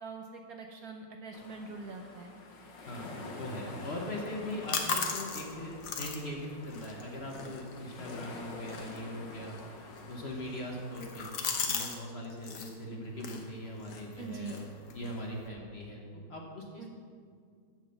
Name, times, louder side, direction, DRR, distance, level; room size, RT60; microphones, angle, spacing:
voice 1, 0.0-2.3 14.2-14.6 16.8-16.9, right 4 dB, 65° right, 3 dB, 1.0 m, -43 dB
sound 1, 1.3-11.4, left 3 dB, 85° left, 1.9 m, -48 dB
voice 2, 2.8-9.6 10.1-11.3 11.6-14.7 14.9-16.9, left 1 dB, 40° left, -1 dB, 1.2 m, -40 dB
sound 2, 4.3-12.0 12.2-12.7 13.2-15.5, left 5 dB, 65° left, 1.5 m, -39 dB
7.6 x 7.5 x 6.8 m, 2.1 s
omnidirectional pair, 1.9 m